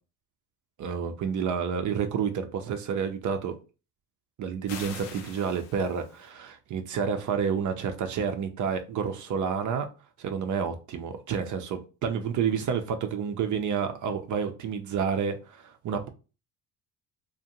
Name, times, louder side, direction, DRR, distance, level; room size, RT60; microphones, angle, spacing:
voice 1, 0.8-3.6 4.4-9.9 10.2-16.1, right 7 dB, 45° right, 0.5 m, -29 dB
sound 1, 4.7-6.3, left 6 dB, 80° left, 0.7 m, -43 dB
2.5 x 2.1 x 2.8 m
supercardioid pair, 75°, 45 cm